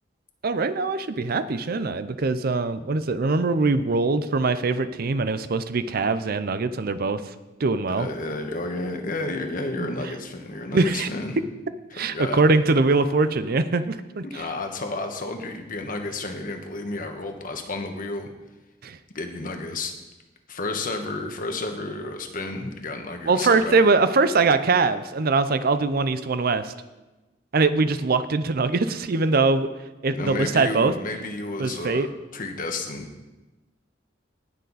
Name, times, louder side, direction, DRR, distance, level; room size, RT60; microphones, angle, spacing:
voice 1, 0.4-7.2 7.6-8.1 9.8-9.9 10.7-11.1 11.9-14.4 18.8-19.0 23.3-26.7 27.5-29.7 30.0-30.9 31.6-32.1, right 3 dB, 55° right, 12 dB, 0.6 m, -22 dB
voice 2, 7.9-11.4 12.1-12.4 14.2-18.3 19.1-19.9 20.5-23.9 30.1-32.1 32.3-33.1, left 2 dB, 50° left, 4 dB, 1.3 m, -31 dB
18.5 x 6.7 x 4.1 m, 1.1 s
head